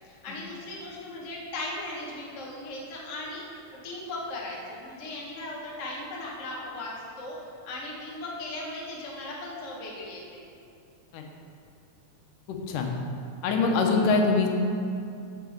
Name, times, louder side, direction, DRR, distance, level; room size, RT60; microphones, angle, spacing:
voice 1, 0.1-10.5, left 2 dB, 40° left, -4 dB, 1.2 m, -38 dB
voice 2, 12.5-12.9 13.4-14.5, left 4 dB, 90° left, 2 dB, 2.5 m, -23 dB
7.5 x 6.2 x 7.1 m, 2.5 s
omnidirectional pair, 3.6 m